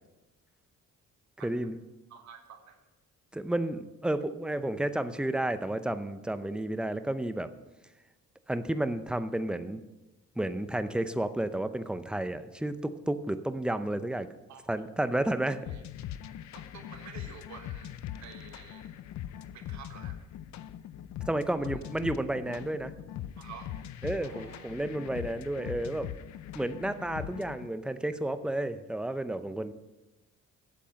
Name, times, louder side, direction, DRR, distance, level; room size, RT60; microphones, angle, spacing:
voice 1, 1.4-1.8 3.3-7.5 8.5-9.8 10.4-14.3 14.7-15.7 21.3-22.9 24.0-26.1 26.5-29.7, right 1 dB, 5° right, 11 dB, 0.6 m, -31 dB
voice 2, 2.1-2.8 14.5-14.6 15.7-15.8 16.5-19.0 19.5-20.2 21.6-21.8 23.4-23.7 24.2-24.9, right 7 dB, 70° right, 6 dB, 1.5 m, -50 dB
sound 1, 15.7-27.7, left 11 dB, 65° left, 0.6 m, -41 dB
8.6 x 7.7 x 6.3 m, 1.1 s
cardioid pair, 90°, 30 cm